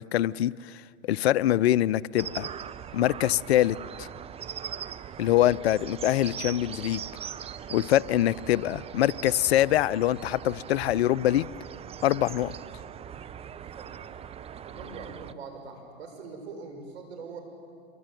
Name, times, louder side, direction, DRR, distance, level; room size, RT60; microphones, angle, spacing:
voice 1, 0.0-2.5 2.9-4.1 5.2-7.0 7.7-11.5 12.0-12.5, left 13 dB, 70° left, 20 dB, 0.7 m, -24 dB
sound 1, 2.2-15.3, right 8 dB, 20° right, 0.7 m, -40 dB
voice 2, 14.7-17.4, right 4 dB, 75° right, 5 dB, 6.5 m, -42 dB
27.0 x 23.5 x 9.2 m, 2.3 s
hypercardioid pair, 110°, 33 cm